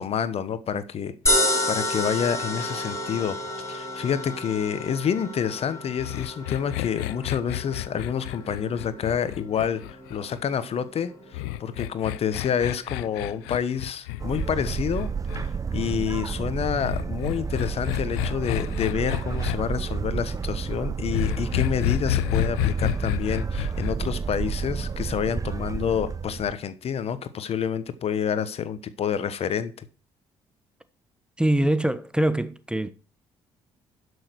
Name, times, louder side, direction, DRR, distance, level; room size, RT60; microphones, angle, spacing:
voice 1, 0.0-3.4 3.7-9.8 10.1-15.1 15.7-29.9, left 8 dB, 55° left, 1.2 m, -28 dB
sound 1, 1.3-13.6, left 1 dB, 25° left, 6.4 m, -31 dB
sound 2, 6.0-10.4 11.3-15.5 16.8-19.6 21.1-23.9, left 18 dB, 85° left, 0.4 m, -30 dB
sound 3, 14.2-26.5, right 5 dB, 30° right, 0.7 m, -30 dB
voice 2, 31.4-32.9, right 1 dB, 5° right, 1.1 m, -23 dB
11.5 x 6.5 x 4.6 m
hypercardioid pair, 55°, 12 cm